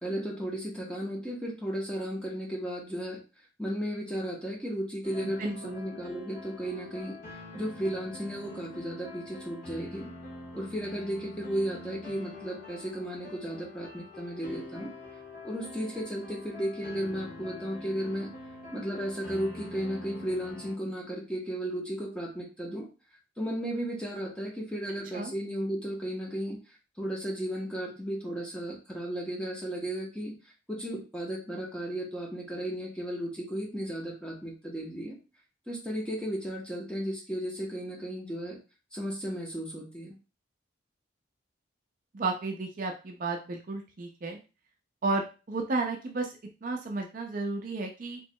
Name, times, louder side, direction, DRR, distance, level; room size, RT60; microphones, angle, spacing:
voice 1, 0.0-3.2 3.6-7.2 7.5-10.1 10.6-14.9 15.4-18.3 18.7-22.9 23.4-26.6 27.0-30.3 30.7-35.2 35.7-38.6 38.9-40.1, equal, 5° left, -2 dB, 0.9 m, -34 dB
sound 1, 5.0-20.8, left 2 dB, 45° left, 1.2 m, -45 dB
voice 2, 5.4-5.8 25.1-25.3 42.1-44.4 45.0-48.2, right 3 dB, 45° right, 2 dB, 0.4 m, -33 dB
4.4 x 3.0 x 2.2 m, 0.32 s
head